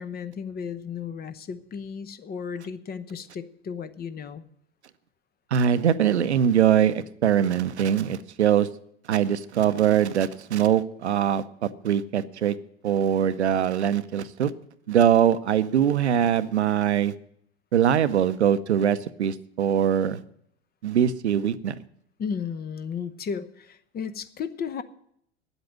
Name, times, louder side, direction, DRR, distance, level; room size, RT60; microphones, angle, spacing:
voice 1, 0.0-4.4 22.2-24.8, left 6 dB, 30° left, 13 dB, 0.9 m, -34 dB
voice 2, 5.5-8.7 9.1-12.6 12.8-14.5 14.9-17.1 17.7-20.2 20.8-21.8, right 9 dB, 80° right, 14 dB, 0.7 m, -22 dB
9.7 x 8.1 x 9.1 m, 0.69 s
figure-of-eight pair, 80°, 33 cm